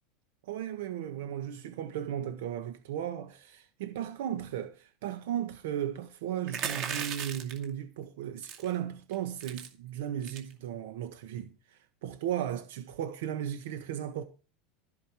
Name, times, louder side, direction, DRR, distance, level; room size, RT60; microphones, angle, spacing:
voice 1, 0.5-14.2, right 10 dB, 70° right, 1.4 m, -36 dB
sound 1, 6.5-7.6 8.4-8.7 9.1-9.2 9.4-9.7 10.2-10.5, right 7 dB, 30° right, 2.4 m, -36 dB
15.0 x 5.3 x 7.4 m
supercardioid pair, 175°, 0 cm